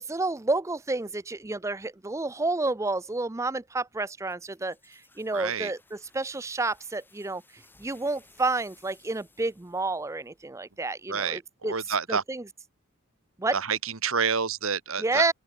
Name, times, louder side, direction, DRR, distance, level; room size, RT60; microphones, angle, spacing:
voice 1, 0.0-11.7 12.1-12.4 13.4-13.6 15.0-15.3, right 3 dB, 15° right, 0.4 m, -30 dB
sound 1, 4.3-10.9, left 3 dB, 10° left, 6.4 m, -60 dB
voice 2, 5.3-5.7 11.1-12.2 13.5-15.3, right 6 dB, 65° right, 1.6 m, -29 dB
head